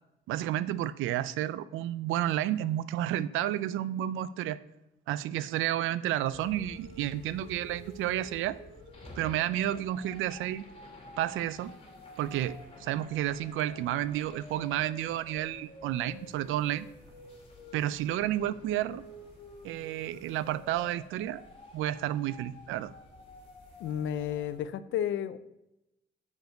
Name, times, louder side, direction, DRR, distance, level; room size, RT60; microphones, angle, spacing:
voice 1, 0.3-4.6 5.1-8.6 9.2-10.6 11.2-11.7 12.2-16.9 17.7-19.0 19.6-21.4 21.7-22.9, right 12 dB, 85° right, 17 dB, 0.4 m, -31 dB
sound 1, 6.3-24.6, left 2 dB, 30° left, 2.4 m, -50 dB
voice 2, 23.8-25.4, left 10 dB, 75° left, 13 dB, 0.5 m, -32 dB
7.2 x 6.0 x 5.2 m, 0.88 s
cardioid pair, 90°, 20 cm